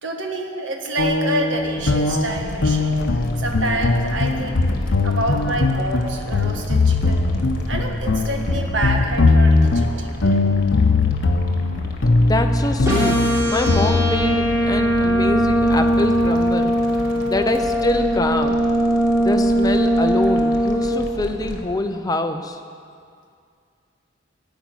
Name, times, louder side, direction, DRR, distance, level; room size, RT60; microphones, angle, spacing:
voice 1, 0.0-4.7 5.0-7.2 7.7-10.4 19.3-19.4, right 1 dB, 70° right, 2 dB, 1.4 m, -28 dB
sound 1, 1.0-16.5, left 3 dB, 75° left, 0.8 m, -20 dB
sound 2, 2.4-21.8, left 1 dB, 50° left, 1.6 m, -35 dB
voice 2, 12.2-13.2 13.5-16.7 17.3-18.6 19.2-22.6, left 2 dB, 20° left, 6 dB, 0.7 m, -24 dB
sound 3, 12.8-20.9, right 1 dB, 15° right, 3.4 m, -20 dB
15.0 x 5.3 x 9.1 m, 2.2 s
head